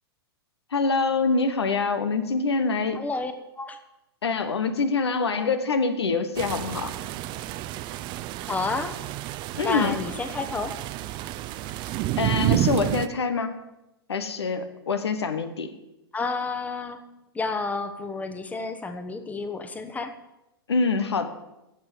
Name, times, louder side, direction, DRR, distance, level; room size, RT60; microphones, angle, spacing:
voice 1, 0.7-3.0 4.2-6.9 9.5-10.0 12.2-13.5 14.1-15.7 20.7-21.3, left 4 dB, 80° left, 10 dB, 1.3 m, -25 dB
voice 2, 2.9-3.8 8.5-9.0 9.6-10.7 16.1-17.0 17.3-20.1, left 3 dB, 10° left, 8 dB, 1.0 m, -30 dB
sound 1, 6.4-13.1, right 14 dB, 35° right, 0.6 m, -30 dB
16.5 x 6.1 x 7.0 m, 0.93 s
hypercardioid pair, 110°, 13 cm